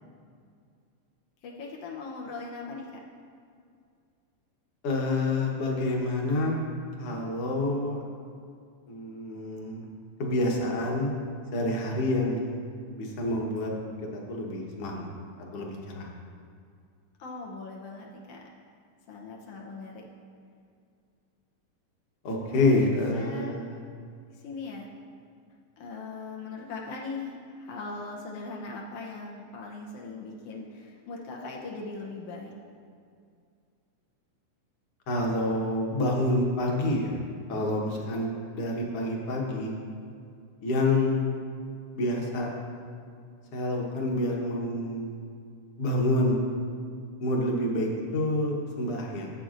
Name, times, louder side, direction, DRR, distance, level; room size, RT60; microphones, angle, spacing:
voice 1, 1.4-3.0 17.2-18.5 19.1-20.0 22.5-23.6 24.3-24.9 25.8-32.5, left 3 dB, 85° left, -1 dB, 1.3 m, -40 dB
voice 2, 4.8-6.6 7.0-8.0 8.9-9.9 10.2-11.1 11.5-12.5 12.9-13.7 14.1-15.1 15.5-16.1 22.2-23.7 35.1-37.2 37.5-39.7 40.6-41.2 41.9-42.5 43.5-45.3 45.8-46.4 47.2-49.3, left 1 dB, 60° left, -1 dB, 1.6 m, -28 dB
15.5 x 7.8 x 2.5 m, 2.3 s
omnidirectional pair, 3.9 m